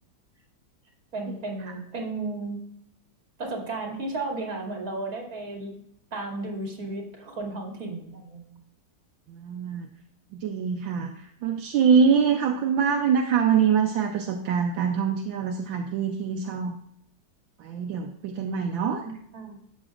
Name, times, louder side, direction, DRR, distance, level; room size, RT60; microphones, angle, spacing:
voice 1, 1.1-2.6 3.4-5.8 6.1-8.5 19.0-19.6, right 2 dB, 45° right, 0 dB, 2.8 m, -34 dB
voice 2, 9.3-9.9 10.3-16.8 17.6-19.0, right 6 dB, 75° right, 3 dB, 1.5 m, -24 dB
13.0 x 8.8 x 2.4 m, 0.74 s
omnidirectional pair, 2.2 m